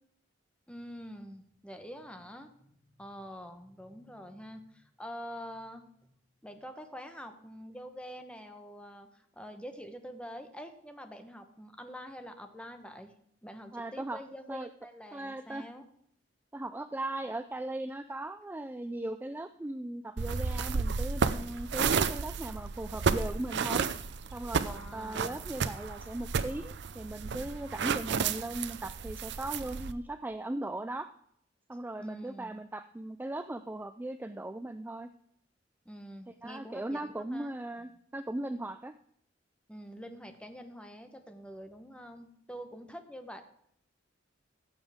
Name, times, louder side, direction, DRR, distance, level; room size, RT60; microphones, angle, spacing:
voice 1, 0.7-6.1 6.4-13.2 13.4-15.8 24.7-25.4 32.0-32.6 35.8-37.5 39.7-43.4, equal, 5° left, 7 dB, 1.0 m, -46 dB
voice 2, 13.7-14.2 14.5-14.7 15.1-15.7 16.5-23.9 24.3-31.1 31.7-35.1 36.4-38.9, right 1 dB, 10° right, 10 dB, 0.3 m, -38 dB
sound 1, 20.2-29.9, right 5 dB, 65° right, 0.6 m, -32 dB
15.0 x 7.2 x 3.5 m, 0.70 s
head